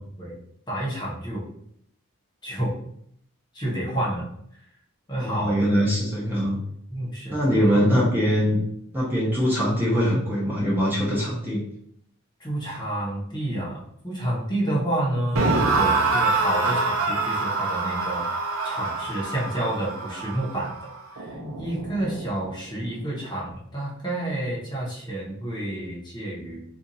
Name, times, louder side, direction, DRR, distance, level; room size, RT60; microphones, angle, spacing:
voice 1, 0.7-1.5 2.4-2.7 3.5-4.3 5.1-5.7 6.9-8.1 12.4-18.2 18.6-20.7 21.1-26.6, right 1 dB, 20° left, -5 dB, 0.9 m, -29 dB
voice 2, 5.2-6.6 7.3-8.6 8.9-11.6, equal, 10° right, -7 dB, 0.7 m, -22 dB
sound 1, 15.4-22.5, right 3 dB, 85° right, 0.6 m, -26 dB
2.5 x 2.5 x 4.0 m, 0.70 s
head